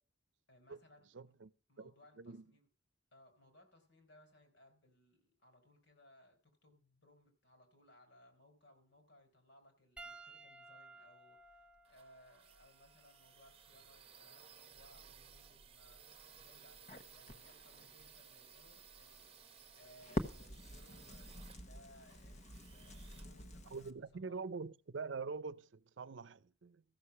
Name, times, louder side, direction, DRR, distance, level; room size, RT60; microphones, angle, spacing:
voice 1, 0.5-1.3 1.7-2.7 3.1-24.4, left 1 dB, 75° left, 4.0 m, -65 dB
voice 2, 1.1-1.5 1.8-1.9 2.2-2.4 23.7-26.8, right 4 dB, 80° right, 0.6 m, -44 dB
Piano, 10.0-14.6 15.6-15.8 17.7-17.8, right 3 dB, 5° right, 0.6 m, -58 dB
sound 1, 11.4-24.2, right 7 dB, 30° right, 0.9 m, -60 dB
Crackle, 16.1-23.9, left 1 dB, 40° left, 1.0 m, -47 dB
14.0 x 6.6 x 7.0 m
head